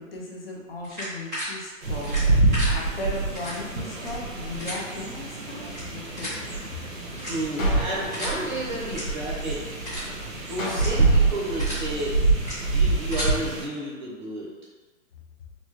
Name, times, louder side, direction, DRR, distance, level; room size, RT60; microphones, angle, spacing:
voice 1, 0.0-2.4 2.7-6.6, left 2 dB, 45° left, -3 dB, 0.7 m, -36 dB
sound 1, 0.8-1.5 2.0-2.7 3.3-3.5 3.9-4.1 4.6-4.7 5.6-5.8 6.2-6.4 7.1-7.6 8.1-8.3 8.8-9.0 9.4-9.5 9.8-10.1 10.7-10.9 11.3-11.8 12.3-12.5 12.9-13.3, equal, ahead, 0.5 m, -34 dB
sound 2, 1.8-13.6, right 3 dB, 90° right, 1.2 m, -26 dB
voice 2, 7.2-9.6 10.4-12.2 12.6-14.5, right 1 dB, 35° right, -5 dB, 0.7 m, -32 dB
sound 3, 7.6-9.6 10.6-12.6, left 3 dB, 75° left, 0.9 m, -38 dB
4.0 x 2.2 x 3.0 m, 1.3 s
hypercardioid pair, 175°, 40 cm